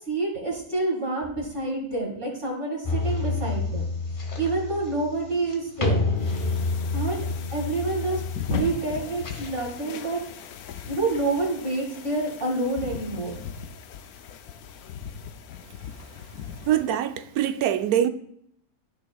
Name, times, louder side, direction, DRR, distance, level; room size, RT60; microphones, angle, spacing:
voice 1, 0.1-3.8 4.4-6.0 6.9-8.2 8.5-10.2 10.9-13.3, right 2 dB, 35° right, 2.3 m, -28 dB
sound 1, 2.8-9.8, left 3 dB, 40° left, 1.2 m, -29 dB
sound 2, 6.2-16.9, left 8 dB, 80° left, 1.1 m, -39 dB
voice 2, 16.7-18.1, right 10 dB, 80° right, 1.1 m, -23 dB
13.5 x 4.8 x 2.3 m
omnidirectional pair, 1.6 m